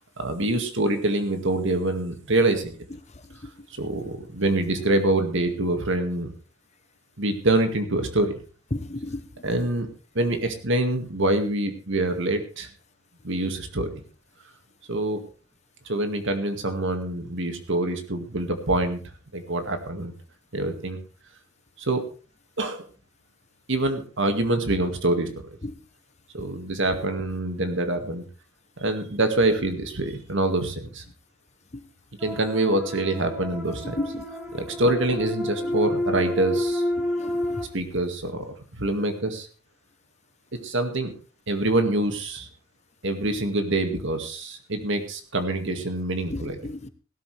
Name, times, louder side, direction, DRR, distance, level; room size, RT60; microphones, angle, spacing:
voice 1, 0.2-2.7 3.8-6.3 7.2-8.3 9.4-9.9 10.2-12.7 13.2-14.0 14.9-15.2 15.9-19.0 19.3-20.1 20.5-21.0 21.8-22.0 22.6-22.8 23.7-25.5 26.3-28.2 28.8-31.0 32.2-34.0 34.5-36.8 37.7-39.5 40.6-41.1 41.5-42.5 43.0-46.6, right 2 dB, 60° right, 6 dB, 2.1 m, -25 dB
voice 2, 8.7-9.2 25.6-25.7 34.0-34.2 37.2-37.6 46.3-46.9, left 2 dB, 30° left, 11 dB, 0.9 m, -32 dB
sound 1, 32.2-37.6, left 1 dB, 5° right, 2.4 m, -29 dB
17.0 x 12.5 x 3.4 m, 0.37 s
head